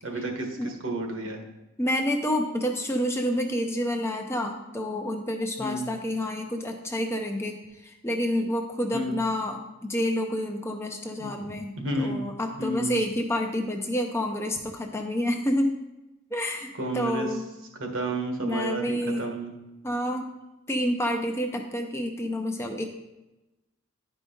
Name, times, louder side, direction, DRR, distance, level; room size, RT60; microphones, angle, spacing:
voice 1, 0.0-1.4 5.6-5.9 8.9-9.2 11.2-11.3 11.8-12.2 12.6-13.0 16.7-17.3 17.8-19.5, right 1 dB, 60° right, 2 dB, 1.4 m, -31 dB
voice 2, 1.8-7.6 7.8-15.7 16.3-17.4 18.4-19.3 19.8-20.3 20.7-22.8, equal, 10° left, 2 dB, 0.5 m, -28 dB
10.5 x 5.0 x 3.8 m, 1.0 s
head